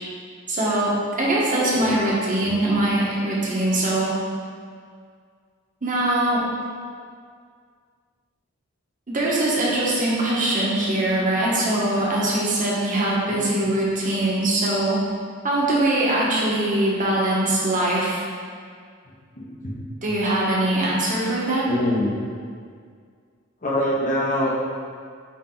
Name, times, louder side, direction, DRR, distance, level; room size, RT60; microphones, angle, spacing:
voice 1, 0.5-4.1 5.8-6.4 9.1-15.0 15.4-18.2 20.0-21.7, right 1 dB, 40° right, -6 dB, 1.5 m, -22 dB
voice 2, 19.3-19.8 21.6-22.1 23.6-24.5, left 1 dB, 40° left, -4 dB, 1.3 m, -25 dB
8.3 x 3.7 x 4.0 m, 2.1 s
head